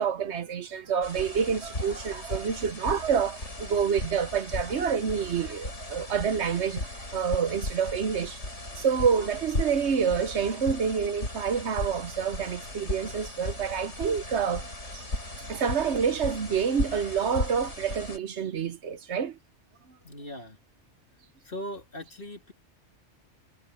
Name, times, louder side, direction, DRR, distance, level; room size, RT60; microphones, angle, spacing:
voice 1, 0.0-8.4 8.8-14.7 14.9-15.2 15.5-19.4, right 7 dB, 70° right, 1.2 m, -28 dB
sound 1, 1.0-18.2, left 1 dB, 90° left, 5.6 m, -36 dB
voice 2, 20.0-20.6 21.4-22.5, equal, 50° left, 3.0 m, -39 dB
omnidirectional pair, 1.2 m